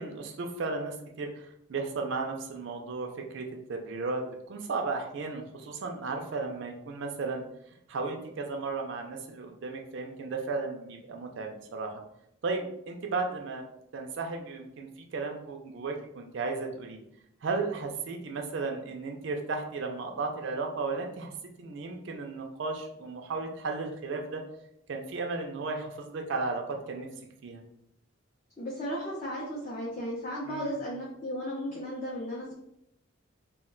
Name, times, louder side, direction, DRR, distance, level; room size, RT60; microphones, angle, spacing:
voice 1, 0.0-7.4 7.9-12.0 12.4-13.6 13.9-17.0 17.4-21.3 21.6-24.4 24.9-27.1 27.4-27.6 30.5-30.8, right 3 dB, 60° right, 2 dB, 0.4 m, -34 dB
voice 2, 28.6-32.5, equal, 35° left, -5 dB, 0.5 m, -35 dB
2.3 x 2.1 x 3.7 m, 0.78 s
head